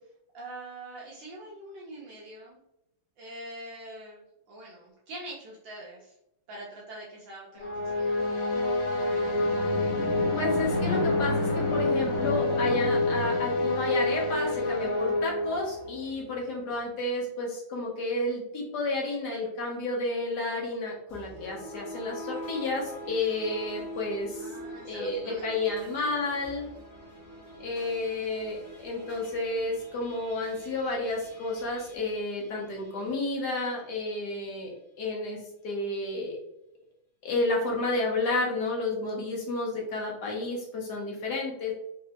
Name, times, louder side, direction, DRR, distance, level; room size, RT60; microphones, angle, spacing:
voice 1, 0.3-2.6 3.2-6.1 6.5-8.2 24.3-26.3, right 1 dB, 65° right, -5 dB, 1.5 m, -44 dB
sound 1, 7.6-16.0, left 2 dB, 85° left, 1.8 m, -27 dB
voice 2, 10.3-24.5 24.9-26.7 27.6-36.4 37.2-41.7, left 2 dB, 60° left, -1 dB, 1.3 m, -31 dB
sound 2, 21.1-33.4, equal, 10° right, 1.0 m, -44 dB
3.9 x 3.2 x 2.8 m, 0.82 s
omnidirectional pair, 2.3 m